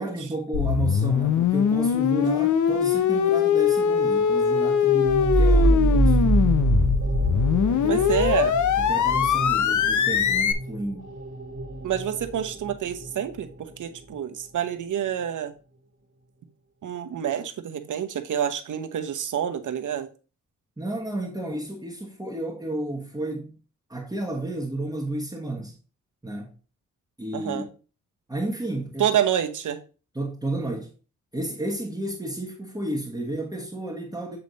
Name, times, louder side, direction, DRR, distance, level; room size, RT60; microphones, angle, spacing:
voice 1, 0.0-6.5 7.7-8.0 8.9-11.1 20.8-23.6 23.9-25.7 26.2-26.5 27.2-27.7 28.3-29.1 30.1-30.9 31.3-34.4, right 2 dB, 10° right, 1.3 m, -31 dB
sound 1, 0.5-10.5, left 8 dB, 70° left, 0.7 m, -22 dB
sound 2, 5.0-14.4, right 2 dB, 50° right, 2.1 m, -25 dB
voice 2, 7.9-8.5 11.8-15.5 16.8-20.1 27.3-27.7 29.0-29.8, right 9 dB, 70° right, 0.9 m, -27 dB
8.1 x 3.4 x 4.0 m
cardioid pair, 80°, 31 cm